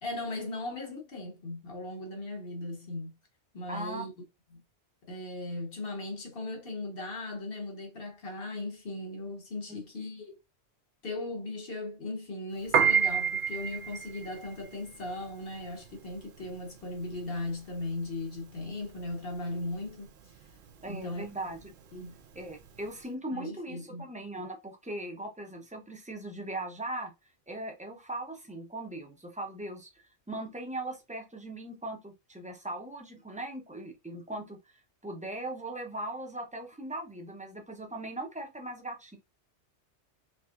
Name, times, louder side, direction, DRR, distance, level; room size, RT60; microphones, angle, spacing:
voice 1, 0.0-3.1 3.5-4.1 4.5-4.6 5.0-10.4 11.0-20.1 20.8-21.2 21.9-22.2 23.3-24.1, left 2 dB, 55° left, 1.5 m, -38 dB
voice 2, 3.7-4.1 9.7-9.8 20.8-21.6 22.3-27.1 27.5-34.6 35.0-39.2, right 1 dB, 10° right, 0.6 m, -39 dB
Piano, 12.6-23.0, right 7 dB, 55° right, 0.7 m, -31 dB
4.1 x 3.2 x 2.5 m
omnidirectional pair, 1.2 m